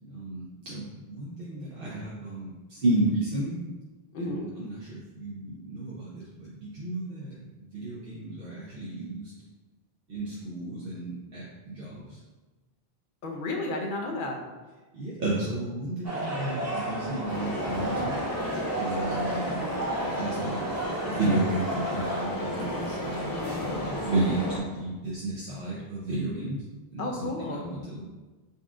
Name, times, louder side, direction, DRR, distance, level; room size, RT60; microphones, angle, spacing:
voice 1, 0.0-3.6 4.2-7.4 7.7-9.3 10.1-12.2 14.9-18.2 18.8-19.7 20.1-20.6 21.0-26.6 26.9-28.0, right 2 dB, 65° right, -7 dB, 0.9 m, -32 dB
voice 2, 4.1-4.5 13.2-14.4 23.3-23.7 27.0-27.6, left 2 dB, 60° left, 2 dB, 0.7 m, -32 dB
sound 1, 16.0-22.3, right 1 dB, 20° right, 0.6 m, -33 dB
sound 2, 17.3-24.6, left 1 dB, 30° left, 0.4 m, -33 dB
4.1 x 2.4 x 3.6 m, 1.2 s
omnidirectional pair, 1.0 m